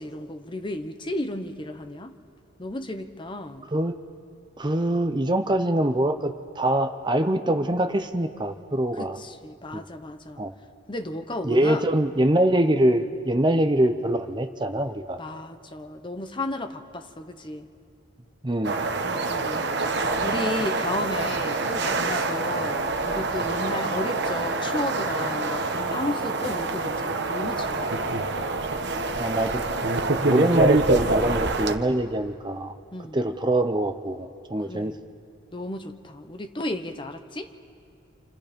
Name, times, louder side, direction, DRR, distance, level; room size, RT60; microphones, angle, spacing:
voice 1, 0.0-2.1 2.6-3.7 8.9-10.4 10.9-11.9 12.1-12.3 13.5-13.6 15.2-17.7 19.0-22.8 23.1-28.1 32.9-33.2 34.7-35.0 35.5-37.5, left 1 dB, 25° left, 7 dB, 1.0 m, -34 dB
voice 2, 4.6-9.2 10.4-10.5 11.4-15.2 18.4-18.8 29.2-29.6 30.2-32.7 33.1-34.9, right 1 dB, 25° right, 8 dB, 0.7 m, -24 dB
sound 1, 18.6-31.8, right 3 dB, 60° right, 1.2 m, -26 dB
29.0 x 27.0 x 5.2 m, 2.3 s
head